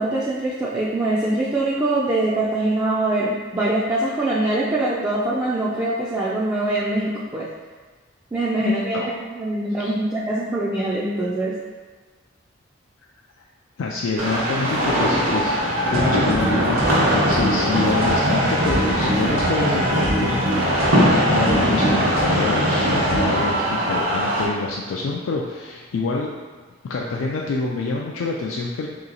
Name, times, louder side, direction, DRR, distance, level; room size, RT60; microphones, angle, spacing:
voice 1, 0.0-7.5 8.3-11.5, right 2 dB, 15° right, -7 dB, 0.3 m, -23 dB
voice 2, 8.6-9.1 9.8-9.9 13.8-15.5 15.9-26.3 26.8-28.9, left 3 dB, 70° left, -2 dB, 0.3 m, -26 dB
sound 1, 14.2-24.5, equal, 75° right, 1.0 m, -22 dB
sound 2, 15.9-23.5, right 1 dB, 45° right, 0.7 m, -23 dB
3.1 x 2.9 x 3.9 m, 1.4 s
head